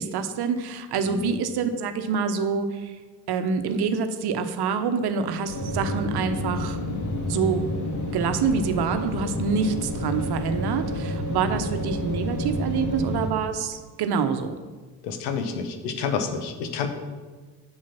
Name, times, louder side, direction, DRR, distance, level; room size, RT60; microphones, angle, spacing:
voice 1, 0.0-3.0 3.3-6.8 7.2-7.6 8.1-14.6, right 6 dB, 55° right, 8 dB, 1.0 m, -26 dB
sound 1, 5.5-13.3, left 1 dB, 40° left, 2.3 m, -29 dB
voice 2, 15.0-16.9, left 6 dB, 80° left, 7 dB, 1.1 m, -29 dB
7.5 x 6.6 x 5.8 m, 1.3 s
hypercardioid pair, 60°, 47 cm